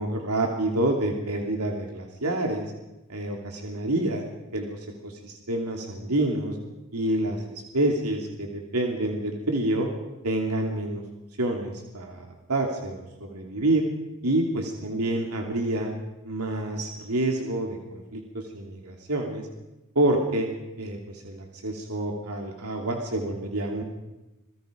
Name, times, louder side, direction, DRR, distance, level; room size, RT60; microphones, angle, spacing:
voice 1, 0.0-2.7 3.1-4.2 4.5-6.5 6.9-7.4 7.7-9.9 10.2-11.0 11.4-13.9 14.2-15.9 16.2-19.4 19.9-20.5 20.8-23.8, right 1 dB, 90° right, 2 dB, 2.9 m, -28 dB
27.5 x 21.0 x 5.2 m, 1.0 s
head